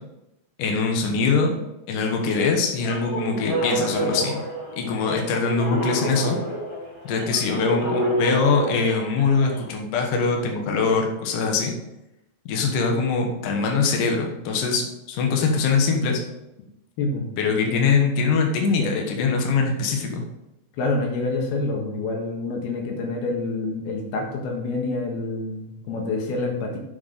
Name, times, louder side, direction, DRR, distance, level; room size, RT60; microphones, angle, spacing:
voice 1, 0.6-1.6 1.9-4.4 4.8-6.4 7.0-11.7 12.5-16.2 17.4-20.2, left 4 dB, 65° left, 2 dB, 2.7 m, -22 dB
sound 1, 2.8-9.6, right 1 dB, 10° left, 1.5 m, -29 dB
voice 2, 20.8-26.8, left 3 dB, 90° left, 0 dB, 3.5 m, -27 dB
7.9 x 6.5 x 5.2 m, 0.92 s
omnidirectional pair, 4.4 m